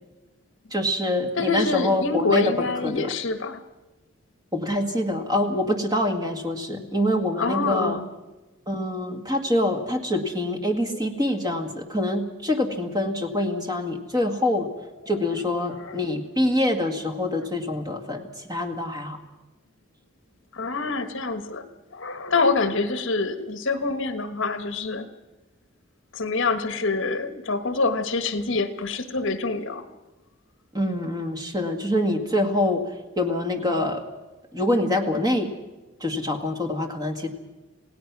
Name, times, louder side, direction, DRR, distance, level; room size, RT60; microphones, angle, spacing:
voice 1, 0.7-3.1 4.5-8.0 8.7-14.7 15.1-19.2 30.7-32.8 33.2-34.0 34.5-35.5 36.0-37.3, left 1 dB, 20° right, 4 dB, 1.9 m, -25 dB
voice 2, 1.4-3.6 6.7-6.9 7.4-8.1 15.8-16.0 20.5-21.6 21.9-25.1 26.1-29.8, left 3 dB, 60° left, 10 dB, 1.4 m, -26 dB
27.5 x 17.0 x 6.1 m, 1.1 s
head